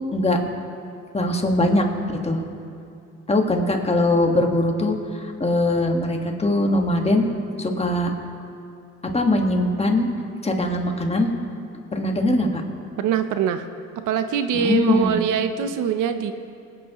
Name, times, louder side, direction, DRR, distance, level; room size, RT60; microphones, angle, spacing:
voice 1, 1.1-1.9 2.2-2.4 3.3-7.3 7.6-8.1 9.1-10.1 10.4-11.3 11.9-12.6 14.5-15.2, left 1 dB, 20° left, 2 dB, 1.5 m, -21 dB
voice 2, 13.0-13.7 14.1-16.3, right 8 dB, 90° right, 9 dB, 0.7 m, -23 dB
22.0 x 9.0 x 3.0 m, 2.6 s
cardioid pair, 90°, 30 cm